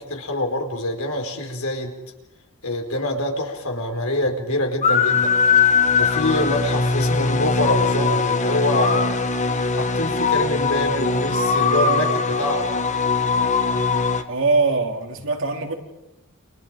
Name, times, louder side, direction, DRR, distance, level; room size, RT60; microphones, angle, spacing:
voice 1, 0.0-2.0 2.6-5.4 6.0-9.1 9.8-12.7, left 1 dB, 75° left, 4.8 m, -25 dB
sound 1, 4.8-14.2, left 4 dB, 35° left, 1.6 m, -20 dB
voice 2, 14.3-15.8, right 3 dB, 60° right, 3.3 m, -22 dB
29.5 x 27.5 x 5.2 m
head